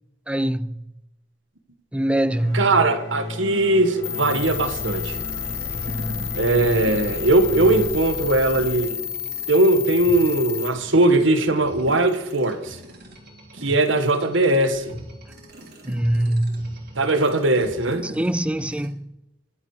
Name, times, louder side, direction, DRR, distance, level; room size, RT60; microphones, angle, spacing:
voice 1, 0.3-0.9 1.9-2.7 15.8-16.8 18.0-19.2, right 1 dB, 5° right, 0.4 m, -23 dB
sound 1, 2.3-7.9, left 1 dB, 60° left, 5.5 m, -34 dB
voice 2, 2.5-5.2 6.3-8.9 9.5-12.8 13.6-15.0 16.9-18.1, right 2 dB, 75° right, 1.5 m, -20 dB
sound 2, 4.0-10.7, left 8 dB, 80° left, 1.0 m, -30 dB
sound 3, 4.3-18.9, right 1 dB, 55° right, 3.3 m, -42 dB
22.0 x 7.6 x 4.9 m
head